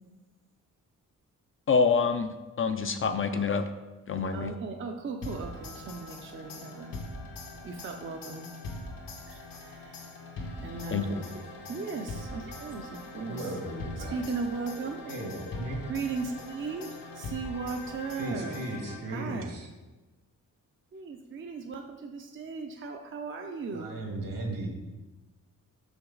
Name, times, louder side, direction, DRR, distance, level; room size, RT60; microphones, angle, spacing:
voice 1, 1.7-2.3 2.6-3.6 4.1-4.5 10.9-11.0, left 5 dB, 40° left, 8 dB, 0.4 m, -26 dB
voice 2, 4.3-7.0 7.6-8.5 9.2-13.6 14.0-18.6 19.1-19.5 20.9-23.9, right 4 dB, 35° right, 3 dB, 0.5 m, -37 dB
sound 1, 5.2-19.3, left 2 dB, 80° left, 1.2 m, -42 dB
voice 3, 13.2-14.2 15.0-15.8 18.2-19.7 23.7-24.7, right 1 dB, 70° right, 1 dB, 1.6 m, -36 dB
6.2 x 5.9 x 3.9 m, 1.1 s
wide cardioid pair, 145°, 34 cm